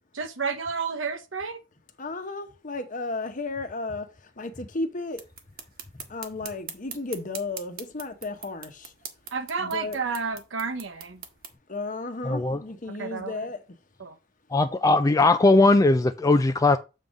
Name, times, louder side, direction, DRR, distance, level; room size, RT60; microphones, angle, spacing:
voice 1, 0.1-1.6 9.3-11.2 13.0-13.3 14.0-14.2, right 5 dB, 75° right, 0.9 m, -31 dB
voice 2, 2.0-5.2 6.1-8.9 9.6-10.0 11.7-13.6, left 3 dB, 40° left, 1.0 m, -34 dB
sound 1, 5.1-11.5, right 7 dB, 50° right, 1.2 m, -43 dB
voice 3, 12.2-12.6 14.5-16.8, left 2 dB, 15° left, 0.3 m, -19 dB
7.5 x 3.7 x 5.2 m
head